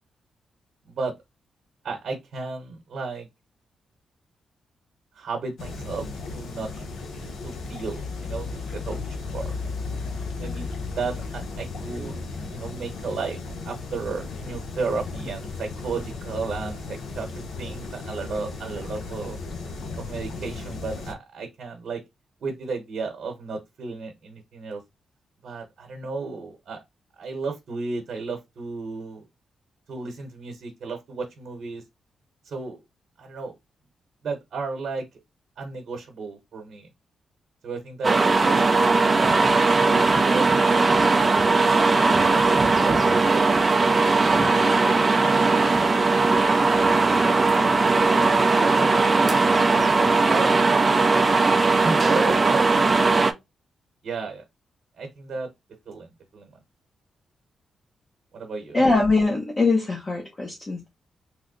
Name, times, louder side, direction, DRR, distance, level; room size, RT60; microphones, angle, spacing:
voice 1, 1.8-3.3 5.1-6.0 6.3-6.8 7.4-9.0 9.3-9.6 10.4-10.7 10.9-12.2 12.4-13.4 13.6-17.3 17.6-19.4 20.0-22.0 22.4-24.8 25.4-26.8 27.2-29.2 29.9-31.8 32.4-32.8 33.2-33.5 34.2-35.0 35.6-36.9 37.6-38.8 39.0-41.8 42.0-43.6 43.8-44.4 47.9-48.9 49.7-50.5 51.0-51.1 51.3-52.9 54.0-54.4 55.0-55.5 55.9-56.5 58.3-58.8, right 4 dB, 60° right, 1.0 m, -33 dB
sound 1, 5.6-21.1, left 3 dB, 85° left, 0.8 m, -35 dB
sound 2, 38.0-53.3, right 3 dB, 25° right, 0.4 m, -19 dB
voice 2, 58.7-60.9, left 3 dB, 25° left, 0.7 m, -22 dB
3.1 x 2.1 x 3.7 m
wide cardioid pair, 150°, 0 cm